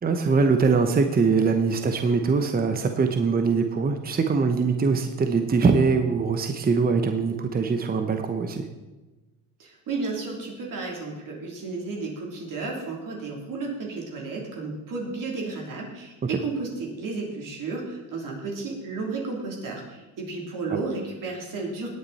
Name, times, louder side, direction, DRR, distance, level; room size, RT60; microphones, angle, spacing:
voice 1, 0.0-8.7 16.3-16.4 20.7-20.8, right 4 dB, 20° right, 6 dB, 1.0 m, -22 dB
voice 2, 9.6-21.9, right 3 dB, 50° right, -1 dB, 3.4 m, -33 dB
18.5 x 8.9 x 4.2 m, 1.1 s
cardioid pair, 110°, 42 cm